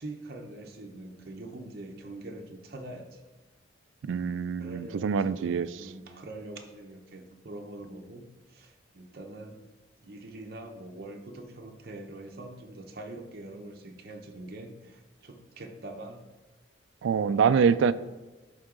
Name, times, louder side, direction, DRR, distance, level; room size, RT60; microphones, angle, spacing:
voice 1, 0.0-3.2 4.6-9.6 10.0-16.2, right 2 dB, 50° right, 2 dB, 0.8 m, -44 dB
voice 2, 4.1-5.7 17.0-17.9, right 6 dB, 75° right, 15 dB, 0.3 m, -25 dB
11.0 x 3.7 x 3.8 m, 1.2 s
head